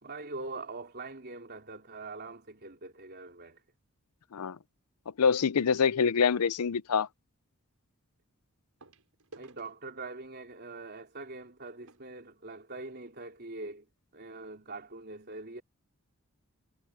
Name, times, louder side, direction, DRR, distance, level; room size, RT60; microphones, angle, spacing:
voice 1, 0.0-3.6 9.4-13.9 14.1-15.6, right 3 dB, 45° right, 3.9 m, -43 dB
voice 2, 5.2-7.1, left 6 dB, 80° left, 0.5 m, -25 dB
Pool Table Ball Hit Sink, 7.2-7.3 8.8-13.2 14.0-14.1 14.3-14.5 15.0-15.1, right 2 dB, 80° right, 5.1 m, -59 dB
head